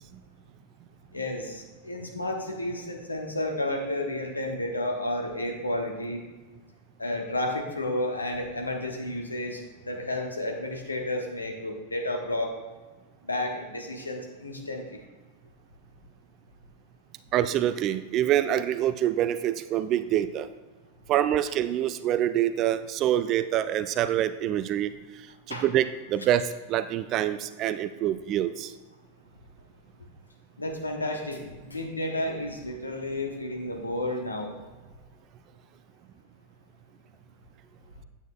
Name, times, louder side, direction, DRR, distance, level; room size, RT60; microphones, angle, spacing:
voice 1, 1.1-6.2 7.0-12.5 13.2-15.0 25.5-25.6 30.6-34.5, left 1 dB, 80° left, 2 dB, 1.2 m, -31 dB
voice 2, 17.3-20.5 21.1-24.9 25.5-28.7, right 11 dB, 35° right, 12 dB, 0.4 m, -26 dB
9.1 x 8.8 x 2.3 m, 1.3 s
figure-of-eight pair, 90°, 0 cm